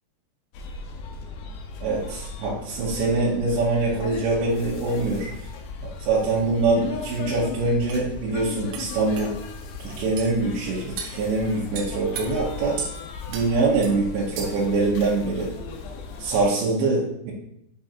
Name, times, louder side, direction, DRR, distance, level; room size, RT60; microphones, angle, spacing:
sound 1, 0.5-16.5, left 4 dB, 85° left, 2.8 m, -37 dB
voice 1, 1.8-5.3 5.8-9.4 9.8-12.8 13.3-15.5 16.2-17.3, right 3 dB, 90° right, -7 dB, 3.2 m, -24 dB
sound 2, 7.3-7.4 7.9-8.0 8.7-8.9 9.2-9.3 10.2-10.3 11.0-11.2 11.7-12.3 12.8-12.9 13.3-13.5 13.8-14.0 14.4-14.7, right 6 dB, 75° right, 2.4 m, -34 dB
7.5 x 5.9 x 2.5 m, 0.78 s
omnidirectional pair, 5.0 m